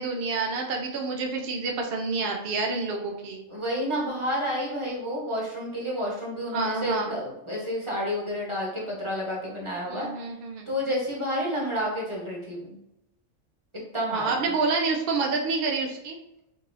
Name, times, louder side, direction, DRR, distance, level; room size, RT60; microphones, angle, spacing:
voice 1, 0.0-3.5 6.5-7.2 9.9-10.7 14.1-16.2, right 4 dB, 60° right, 1 dB, 0.7 m, -28 dB
voice 2, 3.5-10.1 10.7-12.8 13.9-14.4, equal, 25° right, -4 dB, 1.0 m, -30 dB
5.3 x 2.7 x 2.6 m, 0.87 s
omnidirectional pair, 1.3 m